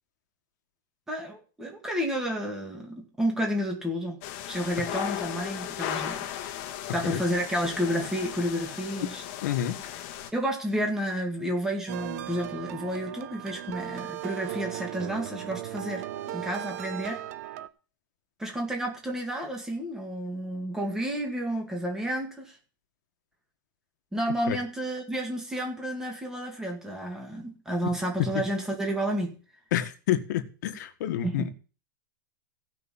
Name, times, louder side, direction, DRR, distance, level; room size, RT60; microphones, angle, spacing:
voice 1, 1.1-4.2 4.5-6.5 6.9-9.2 10.3-17.2 18.4-22.6 24.1-29.4 31.2-31.5, equal, 5° right, 1 dB, 2.3 m, -31 dB
sound 1, 4.2-10.3, left 11 dB, 40° left, 1.5 m, -36 dB
voice 2, 9.4-9.8 24.5-24.6 28.3-28.4 29.7-31.5, left 12 dB, 55° left, 7 dB, 1.7 m, -29 dB
sound 2, 11.9-17.7, right 13 dB, 45° right, 0.8 m, -37 dB
16.0 x 5.9 x 7.2 m, 0.37 s
supercardioid pair, 170°, 11 cm